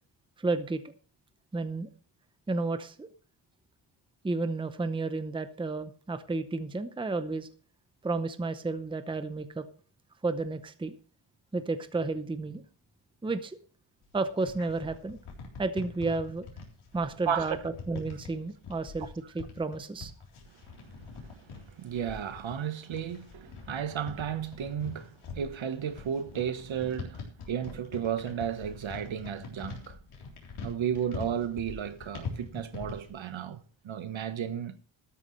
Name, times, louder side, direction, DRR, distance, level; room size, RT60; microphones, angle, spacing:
voice 1, 0.4-0.8 1.5-1.9 2.5-3.1 4.2-7.5 8.0-9.6 10.2-10.9 11.5-12.6 13.2-13.6 14.1-15.2 15.6-16.5 16.9-19.1 19.3-20.1, right 3 dB, 10° right, 0.7 m, -32 dB
sound 1, 14.0-33.1, left 4 dB, 85° left, 3.7 m, -43 dB
voice 2, 17.3-17.6 21.2-30.0 30.6-34.8, right 8 dB, 65° right, 1.2 m, -34 dB
13.0 x 11.5 x 3.2 m
wide cardioid pair, 130°, 49 cm